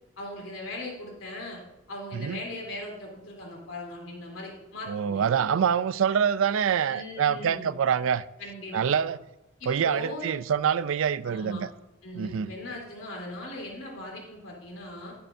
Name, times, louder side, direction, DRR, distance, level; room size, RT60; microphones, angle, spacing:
voice 1, 0.2-1.6 1.9-5.3 6.8-7.7 8.4-9.0 9.6-10.3 11.2-11.6 12.0-15.1, left 1 dB, 80° left, 3.3 m, -39 dB
voice 2, 4.9-8.2 8.7-9.2 9.7-11.7 12.2-12.5, right 7 dB, 80° right, 0.4 m, -25 dB
17.5 x 6.7 x 2.7 m
head